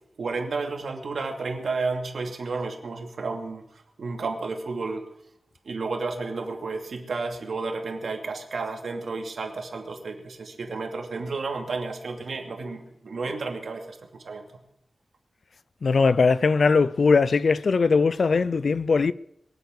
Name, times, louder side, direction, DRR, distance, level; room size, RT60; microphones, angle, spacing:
voice 1, 0.2-3.7 4.0-5.0 5.6-14.5, right 3 dB, 70° right, 2.6 m, -32 dB
voice 2, 15.8-19.1, left 4 dB, 55° left, 0.5 m, -20 dB
23.0 x 8.2 x 6.7 m
wide cardioid pair, 140°, 0 cm